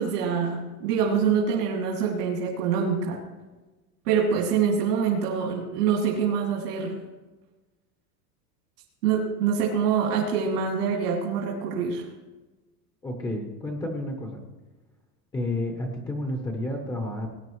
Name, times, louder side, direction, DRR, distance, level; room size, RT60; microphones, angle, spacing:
voice 1, 0.0-3.2 4.0-6.9 9.0-12.1, right 6 dB, 75° right, -2 dB, 2.7 m, -25 dB
voice 2, 13.0-14.4 15.3-17.3, left 1 dB, 10° left, 2 dB, 0.7 m, -31 dB
19.0 x 10.5 x 3.1 m, 1.2 s
supercardioid pair, 165°, 46 cm